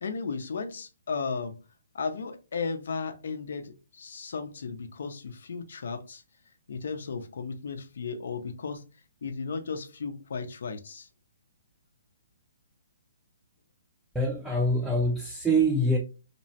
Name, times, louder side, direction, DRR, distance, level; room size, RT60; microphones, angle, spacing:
voice 1, 0.0-1.6 1.9-6.2 6.7-8.8 9.2-11.1, left 5 dB, 70° left, 0.5 m, -35 dB
voice 2, 14.1-16.0, right 1 dB, 5° right, 0.4 m, -25 dB
2.8 x 2.0 x 2.7 m
hypercardioid pair, 140°, 0 cm